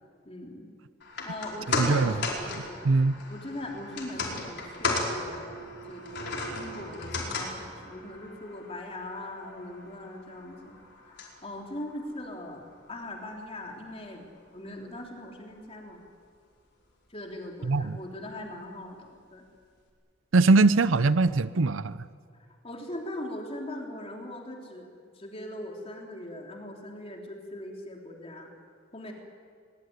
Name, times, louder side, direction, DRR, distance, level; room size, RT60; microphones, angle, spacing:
voice 1, 0.2-0.7 1.2-3.0 3.3-14.3 14.5-16.0 17.1-19.4 22.6-24.9 25.1-28.5 28.9-29.1, left 1 dB, 30° left, 1 dB, 3.3 m, -40 dB
sound 1, 1.0-13.4 13.7-13.8, left 3 dB, 60° left, 5.0 m, -36 dB
voice 2, 1.8-2.1 2.8-3.1 17.7-18.0 20.3-22.0, right 3 dB, 75° right, 15 dB, 0.6 m, -21 dB
22.5 x 21.0 x 9.5 m, 2.1 s
head